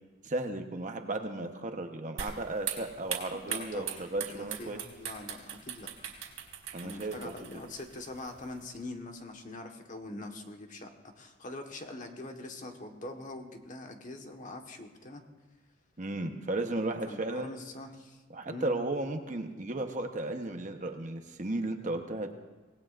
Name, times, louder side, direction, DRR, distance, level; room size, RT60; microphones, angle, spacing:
voice 1, 0.2-4.8 6.7-7.3 16.0-17.5 18.3-22.3, right 2 dB, 40° right, 5 dB, 1.0 m, -34 dB
sound 1, 2.2-8.8, right 8 dB, 90° right, 2.6 m, -41 dB
voice 2, 3.3-6.1 6.8-10.9 11.2-15.2 17.1-18.7, left 2 dB, 40° left, 4 dB, 1.4 m, -43 dB
25.0 x 18.5 x 2.5 m, 1.3 s
head